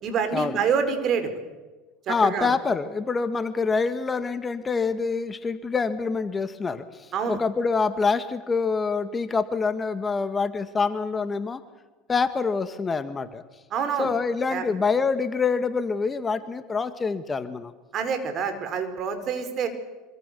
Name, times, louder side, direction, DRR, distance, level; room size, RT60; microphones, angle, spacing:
voice 1, 0.0-1.3 2.1-2.5 7.1-7.4 13.7-14.1 14.5-14.6 17.9-19.7, right 6 dB, 45° right, 8 dB, 5.0 m, -26 dB
voice 2, 2.1-11.6 12.1-13.4 14.0-17.7, left 4 dB, 25° left, 10 dB, 1.7 m, -26 dB
26.0 x 25.0 x 7.0 m, 1.2 s
supercardioid pair, 100°, 0 cm